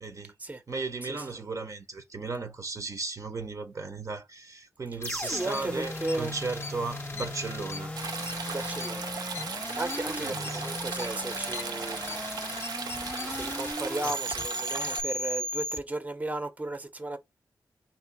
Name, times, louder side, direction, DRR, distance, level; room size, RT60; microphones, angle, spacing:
voice 1, 0.0-0.3 0.7-7.9 10.1-10.6, right 3 dB, 50° right, 0.9 m, -36 dB
sound 1, 5.0-13.7, left 4 dB, 35° left, 0.5 m, -42 dB
sound 2, 5.0-15.8, left 1 dB, 15° left, 0.8 m, -37 dB
voice 2, 5.2-6.3 8.5-9.1 9.7-12.2 13.1-17.2, right 2 dB, 20° right, 0.8 m, -35 dB
Stream, 8.0-15.0, right 5 dB, 70° right, 0.5 m, -37 dB
3.3 x 2.7 x 4.6 m
cardioid pair, 55°, 7 cm